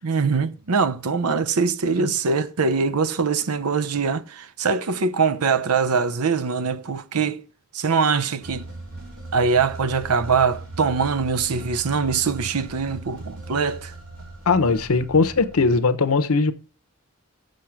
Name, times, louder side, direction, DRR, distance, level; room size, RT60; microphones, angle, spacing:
voice 1, 0.0-7.4 7.7-8.7 9.3-13.9, right 5 dB, 85° right, 0.7 m, -23 dB
sound 1, 8.4-15.8, right 2 dB, 70° right, 2.8 m, -38 dB
voice 2, 14.5-16.5, left 4 dB, 75° left, 0.8 m, -19 dB
6.5 x 6.4 x 5.8 m
head